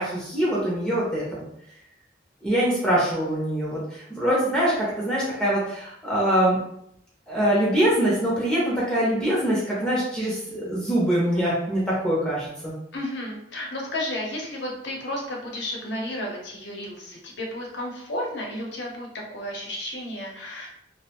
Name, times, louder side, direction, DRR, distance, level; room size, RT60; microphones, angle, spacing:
voice 1, 0.0-1.4 2.4-6.6 7.3-12.7, right 1 dB, 5° left, -7 dB, 0.5 m, -24 dB
voice 2, 12.9-20.7, left 1 dB, 70° left, 0 dB, 0.7 m, -32 dB
2.5 x 2.0 x 2.8 m, 0.76 s
head